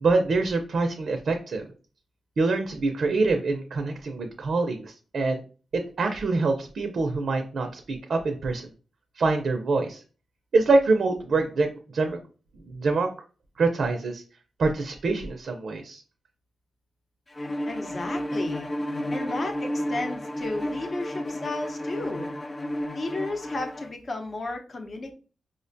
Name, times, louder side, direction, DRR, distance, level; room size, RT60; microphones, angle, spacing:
voice 1, 0.0-1.7 2.4-5.4 5.7-8.7 9.2-10.0 10.5-11.7 11.9-12.2 12.6-13.1 13.6-14.2 14.6-16.0, right 3 dB, 65° right, 4 dB, 0.5 m, -25 dB
Bowed string instrument, 17.4-23.9, equal, 25° left, 0.3 m, -32 dB
voice 2, 17.7-18.7 19.1-22.3 22.9-25.1, left 2 dB, 45° left, 4 dB, 0.7 m, -33 dB
5.0 x 2.2 x 2.6 m, 0.37 s
cardioid pair, 85°, 0 cm